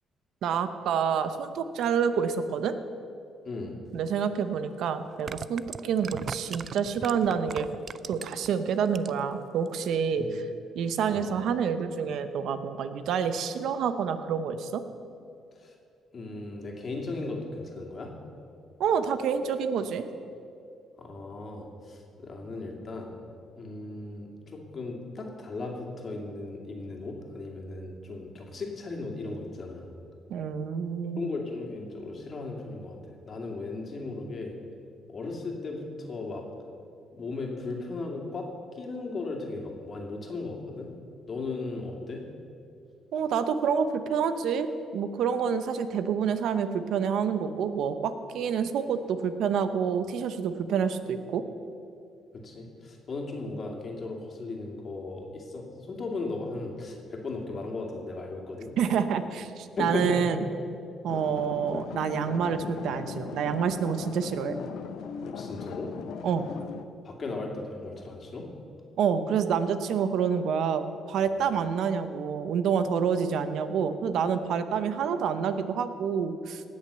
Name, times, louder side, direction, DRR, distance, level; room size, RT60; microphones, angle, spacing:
voice 1, 0.4-2.7 3.9-7.7 8.1-10.4 10.7-14.8 18.8-20.0 30.3-31.3 43.1-51.4 58.8-60.4 61.0-64.6 66.2-66.5 69.0-76.6, right 7 dB, 80° right, 10 dB, 0.8 m, -28 dB
sound 1, 4.1-4.2 5.1-8.5 8.8-9.3 9.7-9.8, right 6 dB, 50° right, 0.4 m, -38 dB
voice 2, 16.1-18.1 21.0-23.1 23.6-29.9 31.2-34.6 35.1-36.4 37.1-38.5 38.8-40.9 41.3-42.2 52.4-58.7 59.8-60.3 65.3-65.9 67.0-68.5, left 3 dB, 45° left, 0 dB, 2.5 m, -36 dB
sound 2, 61.1-66.8, left 7 dB, 80° left, 0.7 m, -39 dB
18.5 x 6.5 x 6.9 m, 2.6 s
cardioid pair, 90°, 0 cm